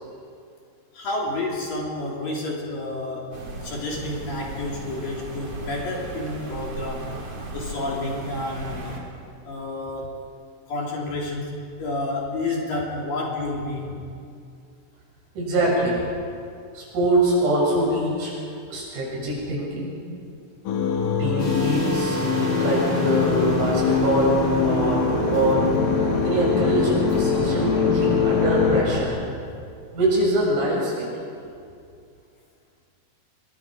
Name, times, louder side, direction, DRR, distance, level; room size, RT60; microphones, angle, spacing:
voice 1, 0.9-3.3 3.6-7.1 7.5-9.0 9.4-10.1 10.7-14.1 25.5-25.6 26.0-26.1, left 2 dB, 45° left, -3 dB, 4.4 m, -30 dB
sound 1, 3.3-9.0, right 2 dB, 35° right, 3.7 m, -36 dB
voice 2, 15.4-16.1 16.7-18.3 18.7-19.9 21.2-22.2 22.6-24.4 24.6-25.7 26.2-29.2 29.9-31.1, right 1 dB, 75° right, -4 dB, 10.0 m, -23 dB
sound 2, 20.7-28.8, left 6 dB, 70° left, 4.0 m, -23 dB
sound 3, 21.4-29.0, left 2 dB, 15° left, 5.7 m, -28 dB
28.0 x 23.5 x 5.2 m, 2.4 s
omnidirectional pair, 6.0 m